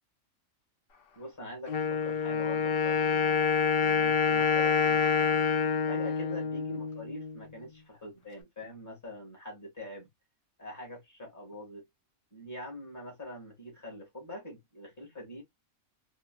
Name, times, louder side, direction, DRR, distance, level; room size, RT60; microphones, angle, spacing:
voice 1, 1.1-3.5 3.8-5.4 5.8-10.1 10.6-11.8 12.3-15.4, left 1 dB, 10° left, 1.6 m, -44 dB
Wind instrument woodwind instrument, 1.7-7.4, left 6 dB, 50° left, 0.7 m, -27 dB
3.6 x 2.7 x 2.2 m
omnidirectional pair, 1.5 m